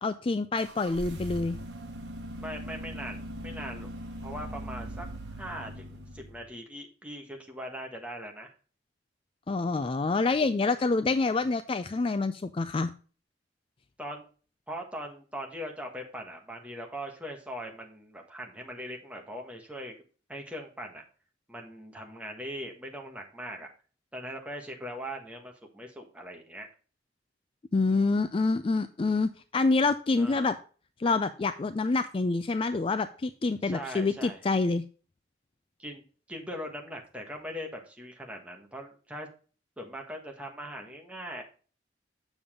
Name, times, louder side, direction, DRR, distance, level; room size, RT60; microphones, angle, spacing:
voice 1, 0.0-1.6 9.5-12.9 27.7-30.5 31.0-34.8, left 3 dB, 30° left, 11 dB, 0.3 m, -27 dB
sound 1, 0.6-6.5, equal, 65° right, 1.3 m, -40 dB
voice 2, 2.4-3.9 4.2-5.1 5.4-8.5 14.0-14.2 14.7-19.9 20.3-21.0 21.5-23.7 24.1-26.7 30.2-30.5 33.6-34.4 35.8-36.0 36.3-39.3 39.8-41.4, equal, 5° right, 1 dB, 1.4 m, -40 dB
7.1 x 6.9 x 3.6 m, 0.38 s
head